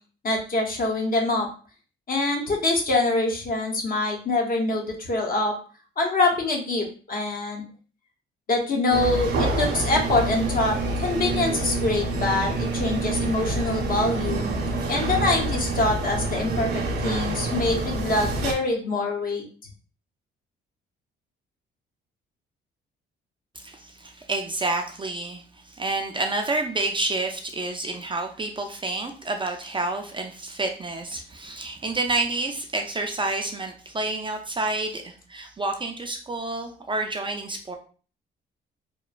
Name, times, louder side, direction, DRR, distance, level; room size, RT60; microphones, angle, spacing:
voice 1, 0.2-1.5 2.1-5.6 6.0-7.6 8.5-14.4 14.9-19.4, left 2 dB, 45° left, 1 dB, 0.8 m, -25 dB
sound 1, 8.9-18.5, right 2 dB, 55° right, 0.7 m, -27 dB
voice 2, 23.6-37.8, right 2 dB, 25° right, 3 dB, 0.4 m, -29 dB
3.0 x 2.1 x 2.4 m, 0.39 s
cardioid pair, 90°, 20 cm